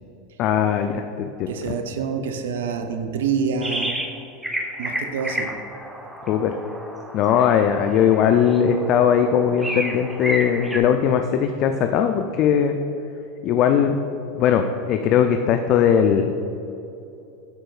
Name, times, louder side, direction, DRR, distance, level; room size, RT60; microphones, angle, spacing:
voice 1, 0.4-1.7 6.3-6.6 7.1-12.8 13.4-14.0 14.3-16.3, left 8 dB, 50° left, 6 dB, 0.3 m, -19 dB
voice 2, 1.5-4.0 4.8-5.6, right 6 dB, 75° right, 7 dB, 0.5 m, -26 dB
sound 1, 3.6-4.2 4.4-10.8, right 1 dB, 5° right, 0.8 m, -31 dB
10.0 x 4.6 x 2.3 m, 2.9 s
hypercardioid pair, 90°, 0 cm